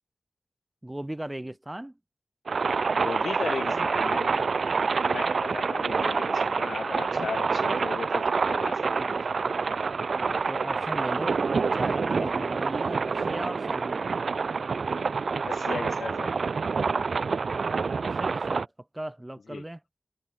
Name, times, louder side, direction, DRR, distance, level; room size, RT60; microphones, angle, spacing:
voice 1, 0.8-1.9 3.7-4.2 4.7-4.8 8.9-9.2 9.5-9.7 10.1-11.4 11.7-14.1 18.0-19.8, right 1 dB, 15° right, 1.0 m, -38 dB
sound 1, 2.5-18.7, right 4 dB, 75° right, 0.4 m, -27 dB
voice 2, 2.9-4.5 5.0-9.2 12.2-12.5 15.4-16.5 19.5-19.6, left 5 dB, 85° left, 0.5 m, -36 dB
wide cardioid pair, 65°, 0 cm